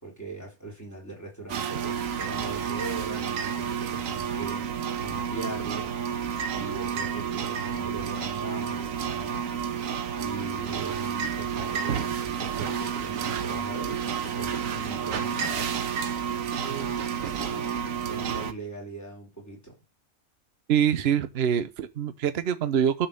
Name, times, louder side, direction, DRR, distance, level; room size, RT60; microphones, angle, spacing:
voice 1, 0.0-4.7 5.0-6.0 6.5-9.5 10.1-15.8 16.5-19.8, right 2 dB, 10° left, 3.6 m, -40 dB
sound 1, 1.5-18.5, right 7 dB, 70° right, 1.3 m, -30 dB
voice 2, 20.7-23.1, right 8 dB, 55° right, 1.0 m, -24 dB
10.5 x 4.3 x 6.8 m
omnidirectional pair, 1.4 m